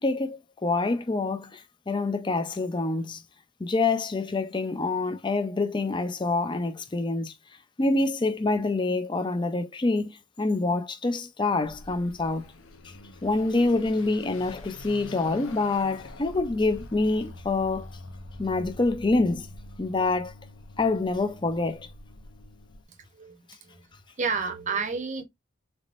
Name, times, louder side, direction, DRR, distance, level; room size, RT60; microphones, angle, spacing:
voice 1, 0.0-3.2 3.6-7.3 7.8-12.5 12.8-13.0 13.2-17.9 18.4-19.5 19.8-20.3 20.8-21.9, left 3 dB, 20° left, 0.4 m, -26 dB
Car passing by / Accelerating revving vroom, 11.6-22.8, left 2 dB, 85° left, 0.7 m, -45 dB
voice 2, 23.1-23.9 24.2-25.2, right 5 dB, 35° right, 0.7 m, -30 dB
4.0 x 3.5 x 2.5 m
head